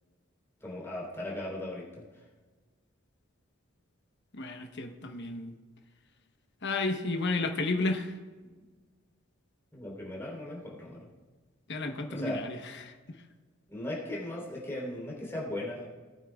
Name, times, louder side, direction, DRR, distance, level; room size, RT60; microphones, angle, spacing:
voice 1, 0.6-2.0 9.7-11.1 12.1-12.4 13.7-15.9, left 1 dB, 15° left, -5 dB, 3.7 m, -37 dB
voice 2, 4.3-5.5 6.6-8.1 11.7-12.6 12.8-13.2, left 2 dB, 55° left, 4 dB, 1.0 m, -32 dB
19.5 x 8.8 x 2.4 m, 1.4 s
head